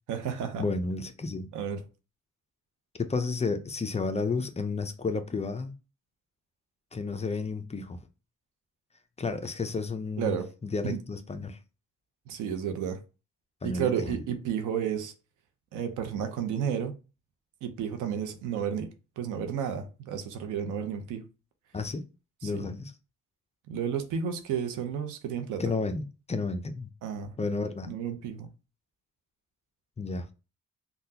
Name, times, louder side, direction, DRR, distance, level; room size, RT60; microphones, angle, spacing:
voice 1, 0.1-0.6 1.5-1.8 10.2-10.5 10.8-11.0 12.3-13.0 13.6-15.1 15.7-16.9 17.6-18.9 19.2-21.2 22.4-22.7 23.7-25.6 27.0-27.3 27.8-28.5, right 8 dB, 90° right, 0.7 m, -32 dB
voice 2, 0.6-1.5 3.0-5.7 6.9-8.0 9.2-11.6 13.6-14.2 21.7-22.0 22.4-22.9 25.6-26.9 27.4-27.9 30.0-30.3, left 4 dB, 20° left, 0.5 m, -32 dB
3.7 x 2.3 x 2.7 m
cardioid pair, 90°, 30 cm